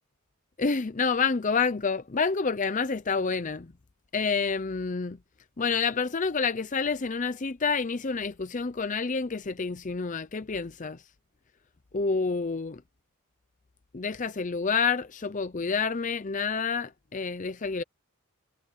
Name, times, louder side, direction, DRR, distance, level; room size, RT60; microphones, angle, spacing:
voice 1, 0.6-3.7 4.1-5.2 5.6-11.0 11.9-12.8 13.9-17.8, left 5 dB, 35° left, 0.6 m, -28 dB
head